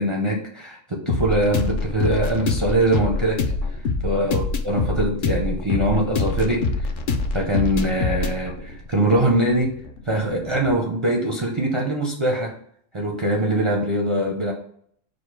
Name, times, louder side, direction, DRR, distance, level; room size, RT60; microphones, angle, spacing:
voice 1, 0.0-3.4 4.0-6.9 7.3-9.7 10.1-12.5 12.9-14.5, right 1 dB, 40° right, 1 dB, 0.4 m, -22 dB
sound 1, 1.1-10.7, left 4 dB, 60° left, 0.5 m, -26 dB
5.0 x 2.2 x 4.5 m, 0.64 s
omnidirectional pair, 1.4 m